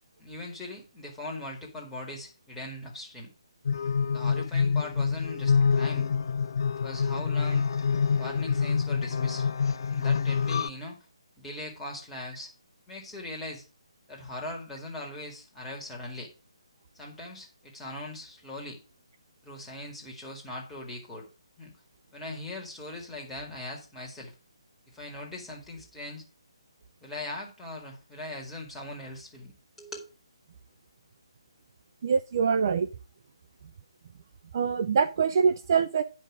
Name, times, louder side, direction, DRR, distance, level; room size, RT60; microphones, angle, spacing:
voice 1, 0.2-3.3 4.1-6.1 6.8-7.7 8.2-9.5 9.9-11.0 11.4-12.5 12.9-13.6 14.1-16.3 16.9-18.8 19.4-21.3 21.6-21.7 22.1-24.3 24.9-26.2 27.0-29.5 29.8-30.0, left 1 dB, 5° left, -2 dB, 2.1 m, -40 dB
sound 1, 3.6-10.7, left 6 dB, 50° left, 0.3 m, -26 dB
voice 2, 32.0-32.9 34.5-36.0, right 6 dB, 40° right, 11 dB, 0.5 m, -24 dB
9.2 x 5.5 x 4.9 m, 0.33 s
figure-of-eight pair, 145°, 3 cm